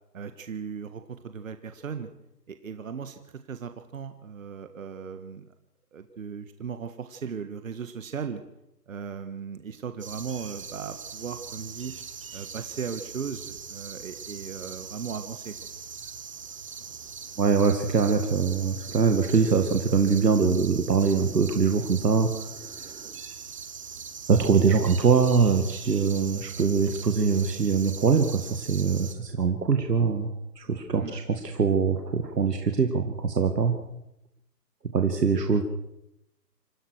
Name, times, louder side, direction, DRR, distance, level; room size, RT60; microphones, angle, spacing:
voice 1, 0.1-2.1 2.5-3.2 3.5-5.4 5.9-8.4 8.9-11.9 12.3-15.5 30.9-31.1, right 6 dB, 50° right, 9 dB, 1.7 m, -37 dB
sound 1, 10.0-29.1, right 6 dB, 20° right, 0.9 m, -41 dB
voice 2, 17.4-23.1 24.3-30.3 30.6-33.8 34.9-35.6, right 5 dB, 70° right, 5 dB, 2.4 m, -23 dB
27.0 x 15.5 x 6.4 m, 0.84 s
hypercardioid pair, 160°, 50 cm